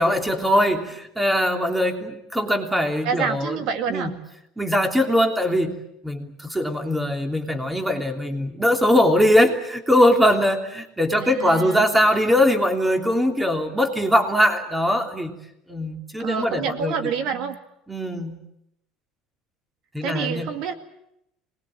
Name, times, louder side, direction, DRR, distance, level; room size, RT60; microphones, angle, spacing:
voice 1, 0.0-3.6 3.9-4.1 4.6-5.7 6.0-15.3 15.7-16.9 17.3-17.4 17.9-18.3 19.9-20.5, equal, 5° right, 5 dB, 3.0 m, -21 dB
voice 2, 3.0-4.1 11.2-11.8 16.2-17.6 20.0-20.7, right 6 dB, 65° right, 8 dB, 2.2 m, -27 dB
25.0 x 20.5 x 8.8 m, 0.80 s
supercardioid pair, 120°, 0 cm